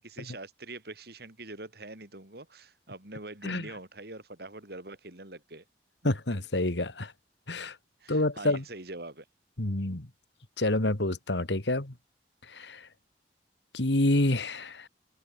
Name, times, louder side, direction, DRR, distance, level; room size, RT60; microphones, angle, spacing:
voice 1, 0.2-5.6 8.0-9.3, right 2 dB, 60° right, 4.5 m, -44 dB
voice 2, 6.0-7.1 7.5-7.7 8.1-8.6 9.6-10.1 10.6-11.9 12.5-12.8 13.7-14.9, left 1 dB, 85° left, 2.3 m, -28 dB
head